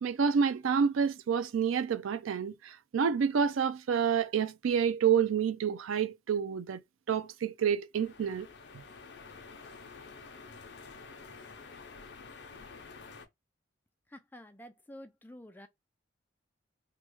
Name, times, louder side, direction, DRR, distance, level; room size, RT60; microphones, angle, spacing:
voice 1, 0.0-6.8 7.1-8.5, right 7 dB, 80° right, 0.4 m, -28 dB
sound 1, 7.9-13.3, left 4 dB, 55° left, 0.6 m, -49 dB
voice 2, 14.1-15.7, equal, 10° left, 0.3 m, -49 dB
3.0 x 2.3 x 3.0 m
head